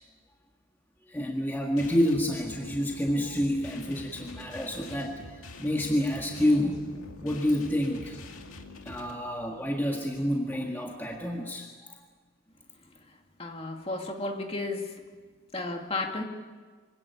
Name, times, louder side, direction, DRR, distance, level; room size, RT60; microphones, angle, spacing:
voice 1, 1.1-5.2 5.6-6.8 7.2-8.2 8.8-11.7, equal, 10° left, 0 dB, 1.7 m, -28 dB
sound 1, 1.8-9.1, left 2 dB, 90° left, 2.2 m, -45 dB
voice 2, 13.4-14.9 15.5-16.2, left 2 dB, 30° left, 3 dB, 2.2 m, -33 dB
25.5 x 17.0 x 9.5 m, 1.5 s
head